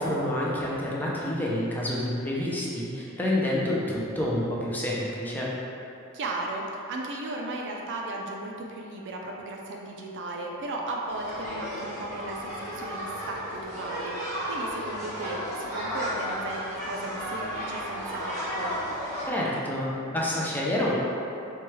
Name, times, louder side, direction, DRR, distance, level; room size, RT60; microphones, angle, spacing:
voice 1, 0.0-5.5 19.3-20.9, left 1 dB, 10° left, -5 dB, 0.4 m, -28 dB
voice 2, 6.1-18.7, right 2 dB, 55° right, -1 dB, 0.4 m, -36 dB
sound 1, 11.1-19.3, equal, 35° right, 1.1 m, -34 dB
4.4 x 2.3 x 3.0 m, 2.9 s
head